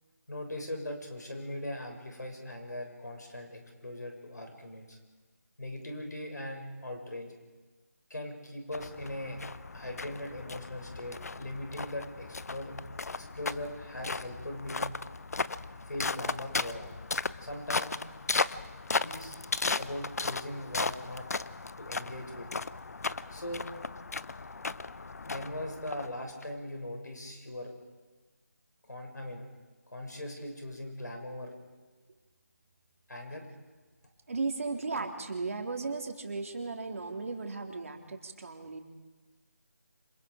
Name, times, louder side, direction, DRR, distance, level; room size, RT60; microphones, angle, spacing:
voice 1, 0.3-5.0 5.6-7.3 8.1-9.4 9.7-12.7 13.2-14.9 15.9-16.9 17.4-17.9 19.0-19.4 19.7-21.2 21.8-22.5 23.3-23.7 25.2-27.7 28.8-29.5 29.9-31.5 33.1-33.4, left 1 dB, 90° left, 3 dB, 6.9 m, -40 dB
sound 1, 8.7-26.4, left 4 dB, 60° left, 0.7 m, -36 dB
voice 2, 34.3-38.8, right 3 dB, 55° right, 3 dB, 3.2 m, -36 dB
28.0 x 26.5 x 5.0 m, 1.3 s
figure-of-eight pair, 165°, 9 cm